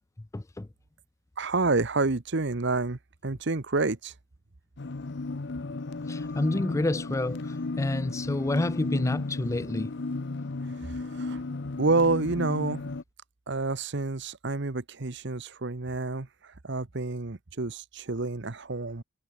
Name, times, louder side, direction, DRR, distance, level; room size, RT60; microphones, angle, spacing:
voice 1, 0.3-0.7 6.1-7.4 7.8-9.9, left 2 dB, 15° left, 0.4 m, -28 dB
voice 2, 1.4-4.1 10.8-11.4 11.8-12.8 13.5-19.0, right 3 dB, 60° right, 1.1 m, -29 dB
sound 1, 4.8-13.0, left 3 dB, 60° left, 0.8 m, -34 dB
head